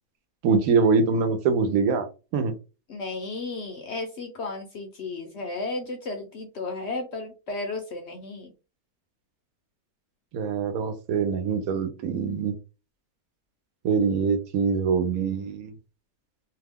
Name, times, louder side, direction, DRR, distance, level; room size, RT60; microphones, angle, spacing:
voice 1, 0.4-2.1 2.3-2.5 10.3-12.5 13.8-15.7, right 5 dB, 75° right, 7 dB, 1.0 m, -24 dB
voice 2, 2.9-8.5, left 3 dB, 60° left, 3 dB, 0.7 m, -34 dB
2.7 x 2.2 x 3.4 m, 0.31 s
omnidirectional pair, 1.6 m